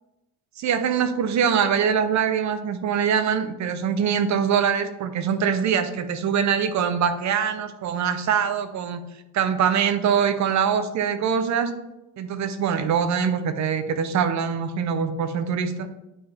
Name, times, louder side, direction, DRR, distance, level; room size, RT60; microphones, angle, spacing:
voice 1, 0.6-9.0 9.3-11.7 12.2-15.9, right 7 dB, 50° right, 10 dB, 0.8 m, -23 dB
9.4 x 5.7 x 3.4 m, 0.97 s
cardioid pair, 120°, 36 cm